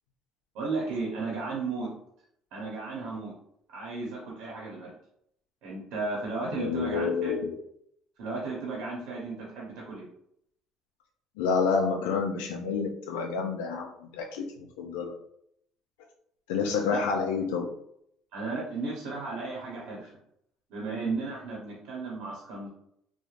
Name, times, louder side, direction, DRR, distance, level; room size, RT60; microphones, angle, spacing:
voice 1, 0.5-1.9 2.5-3.3 3.7-4.9 5.6-7.3 8.2-10.1 16.9-17.0 18.3-20.1 20.7-22.7, right 3 dB, 75° right, -4 dB, 0.8 m, -34 dB
voice 2, 6.6-7.6 11.4-15.1 16.5-17.7, left 5 dB, 90° left, 2 dB, 0.3 m, -29 dB
3.1 x 2.1 x 2.4 m, 0.71 s
supercardioid pair, 85°, 0 cm